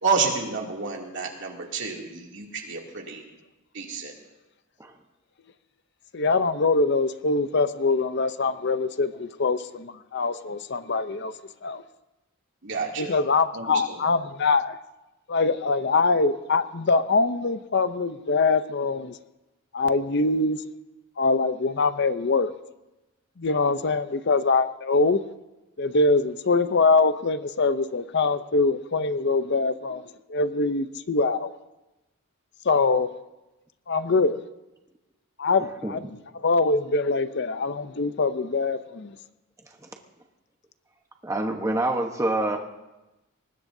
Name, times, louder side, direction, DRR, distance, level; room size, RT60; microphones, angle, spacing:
voice 1, 0.0-3.2 3.7-4.1 12.6-13.2 13.5-14.1, right 4 dB, 60° right, 2.7 m, -29 dB
voice 2, 6.1-11.3 11.6-11.8 13.0-14.8 15.3-19.1 19.7-20.6 21.2-22.5 23.4-25.2 25.8-30.0 30.3-31.5 32.7-33.1 33.9-34.4 35.4-39.1, left 3 dB, 55° left, 0.6 m, -23 dB
voice 3, 41.2-42.6, right 2 dB, 15° right, 1.1 m, -26 dB
24.0 x 20.0 x 2.7 m
head